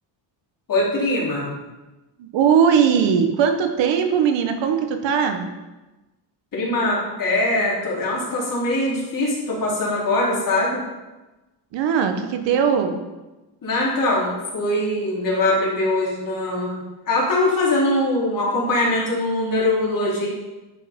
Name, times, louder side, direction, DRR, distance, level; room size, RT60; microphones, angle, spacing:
voice 1, 0.7-1.6 6.5-10.8 13.6-20.3, left 2 dB, 50° left, -5 dB, 3.6 m, -22 dB
voice 2, 2.2-5.5 11.7-13.0, right 7 dB, 85° right, 6 dB, 1.2 m, -19 dB
10.5 x 5.6 x 5.3 m, 1.1 s
cardioid pair, 135°, 43 cm